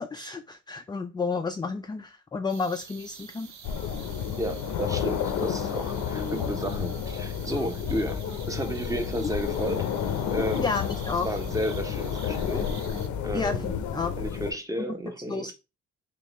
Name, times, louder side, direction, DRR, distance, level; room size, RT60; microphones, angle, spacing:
voice 1, 0.0-3.5 10.6-11.3 13.3-14.1 14.9-15.0 15.3-15.5, left 4 dB, 15° left, 0.3 m, -31 dB
sound 1, 2.5-13.1, right 7 dB, 65° right, 0.7 m, -48 dB
sound 2, 3.6-14.5, left 8 dB, 75° left, 0.6 m, -31 dB
voice 2, 4.4-9.9 10.3-10.7 11.2-12.7 13.2-13.7 14.2-15.5, equal, 10° right, 0.7 m, -32 dB
3.7 x 3.2 x 3.0 m
cardioid pair, 90°, 30 cm